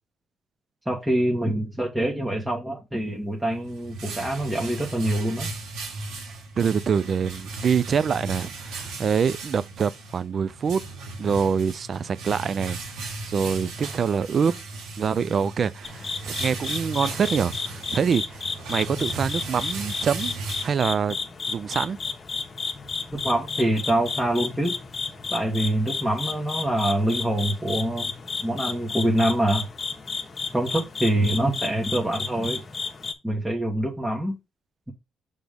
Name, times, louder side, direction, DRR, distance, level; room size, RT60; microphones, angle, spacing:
voice 1, 0.8-5.5 23.1-24.8 25.3-28.1 28.4-29.7 30.5-32.6 33.2-34.3, right 1 dB, 10° right, 1.4 m, -25 dB
sound 1, 3.4-21.2, right 3 dB, 90° right, 2.0 m, -37 dB
voice 2, 6.6-10.8 11.2-14.5 15.0-20.3 20.6-21.2 21.5-22.0, right 6 dB, 50° right, 0.4 m, -25 dB
sound 2, 15.8-33.1, left 4 dB, 40° left, 1.2 m, -33 dB
6.1 x 3.5 x 5.1 m
cardioid pair, 90°, 0 cm